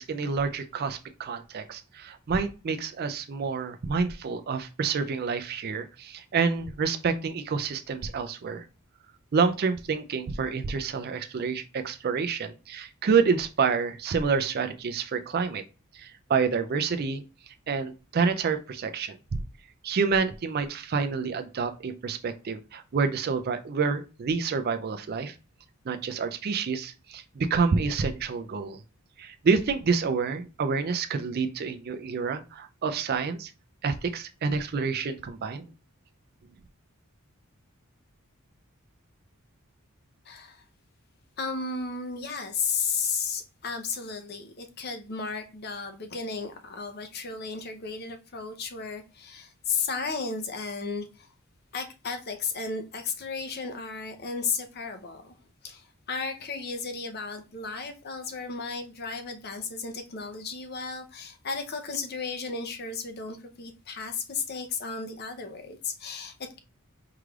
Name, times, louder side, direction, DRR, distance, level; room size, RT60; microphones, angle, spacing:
voice 1, 0.0-8.6 9.3-15.6 15.9-17.2 17.7-19.1 19.8-25.3 25.9-28.8 29.2-33.5 33.8-35.6, right 5 dB, 45° right, 0.4 m, -28 dB
voice 2, 40.3-40.6 41.4-51.3 51.7-55.4 55.6-66.6, left 5 dB, 45° left, 0.7 m, -34 dB
4.7 x 3.2 x 2.3 m
head